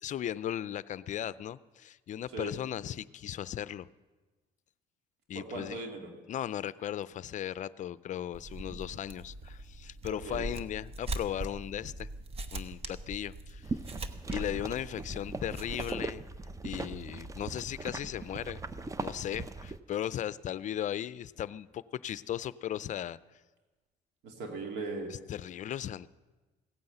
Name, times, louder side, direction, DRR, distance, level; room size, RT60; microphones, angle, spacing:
voice 1, 0.0-3.9 5.3-5.8 6.3-12.1 12.5-13.8 14.3-16.3 16.6-18.6 19.0-23.2 25.3-26.1, left 11 dB, 45° left, 18 dB, 0.5 m, -37 dB
voice 2, 5.3-6.1 10.1-10.5 24.2-25.1, right 3 dB, 80° right, 3 dB, 2.7 m, -39 dB
sound 1, 8.3-15.9, right 2 dB, 35° right, 1.0 m, -41 dB
sound 2, 13.6-19.8, right 3 dB, 20° right, 0.6 m, -40 dB
16.0 x 9.7 x 7.9 m, 1.2 s
cardioid pair, 110°, 17 cm